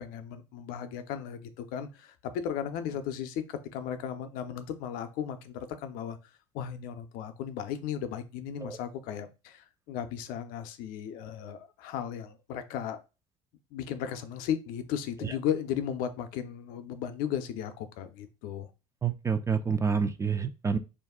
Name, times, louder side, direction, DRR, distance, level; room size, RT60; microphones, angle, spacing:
voice 1, 0.0-6.2 6.5-13.0 13.7-18.7, left 9 dB, 60° left, 0.5 m, -35 dB
voice 2, 19.0-20.8, right 6 dB, 20° right, 0.3 m, -28 dB
2.5 x 2.2 x 3.5 m
hypercardioid pair, 70°, 17 cm